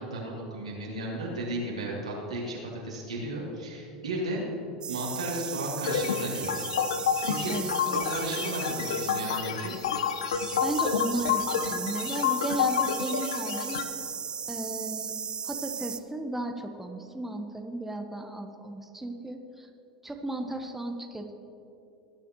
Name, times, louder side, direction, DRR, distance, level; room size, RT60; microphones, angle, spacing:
voice 1, 0.0-4.4 4.9-6.6 7.2-7.5 7.9-9.7, right 1 dB, 90° right, -4 dB, 2.9 m, -34 dB
sound 1, 4.8-16.0, right 7 dB, 25° right, 0.5 m, -36 dB
sound 2, 5.8-13.8, left 8 dB, 75° left, 0.7 m, -29 dB
voice 2, 7.5-8.3 10.6-13.9 14.5-15.1 15.4-19.7 20.0-21.3, right 1 dB, 5° right, 4 dB, 1.0 m, -35 dB
19.5 x 9.8 x 3.1 m, 2.8 s
hypercardioid pair, 85°, 3 cm